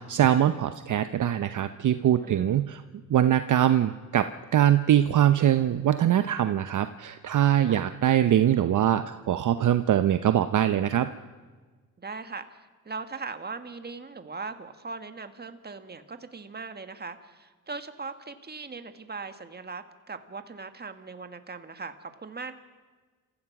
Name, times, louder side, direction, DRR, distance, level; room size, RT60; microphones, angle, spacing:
voice 1, 0.0-2.8 3.1-11.1, right 11 dB, 55° right, 10 dB, 0.8 m, -23 dB
voice 2, 2.2-2.6 7.7-7.8 12.0-12.4 12.9-22.5, right 4 dB, 25° right, 9 dB, 1.7 m, -39 dB
28.0 x 15.5 x 6.0 m, 1.4 s
cardioid pair, 80°, 37 cm